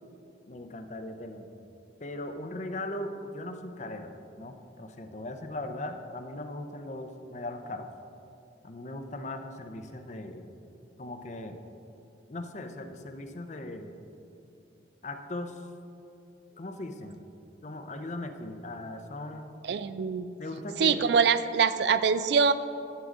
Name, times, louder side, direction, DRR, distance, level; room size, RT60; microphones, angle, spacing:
voice 1, 0.5-1.5 2.0-4.1 4.4-7.9 8.6-10.5 11.0-11.6 12.3-13.9 15.0-15.6 16.6-17.2 17.6-19.5 20.4-21.0, left 1 dB, 40° left, 7 dB, 0.6 m, -38 dB
voice 2, 19.7-20.3 20.8-22.5, right 6 dB, 65° right, 13 dB, 0.3 m, -24 dB
11.0 x 7.5 x 3.8 m, 2.8 s
head